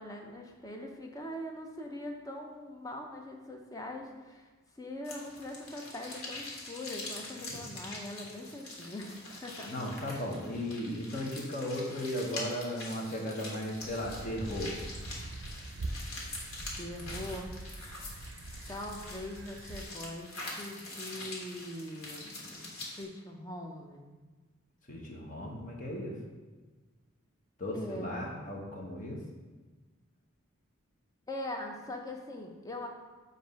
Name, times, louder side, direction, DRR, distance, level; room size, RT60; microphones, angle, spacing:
voice 1, 0.0-4.5 4.8-9.7 16.8-17.5 18.7-24.1 27.7-28.3 31.3-32.9, left 1 dB, 15° left, 2 dB, 0.6 m, -42 dB
sound 1, 5.0-23.0, left 2 dB, 80° left, 1.5 m, -44 dB
voice 2, 9.6-14.7 24.9-26.1 27.6-29.2, left 1 dB, 35° left, -1 dB, 0.9 m, -36 dB
sound 2, 13.7-19.8, right 2 dB, 60° right, 0.5 m, -43 dB
7.5 x 2.6 x 5.1 m, 1.3 s
head